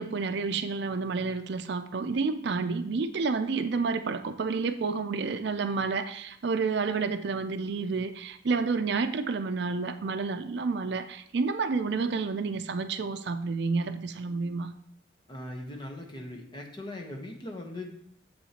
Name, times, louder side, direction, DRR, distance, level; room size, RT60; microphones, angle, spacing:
voice 1, 0.0-14.7, right 4 dB, 60° right, 8 dB, 0.5 m, -30 dB
voice 2, 15.3-17.8, left 1 dB, 25° left, 1 dB, 1.0 m, -40 dB
8.5 x 7.1 x 2.9 m, 0.69 s
head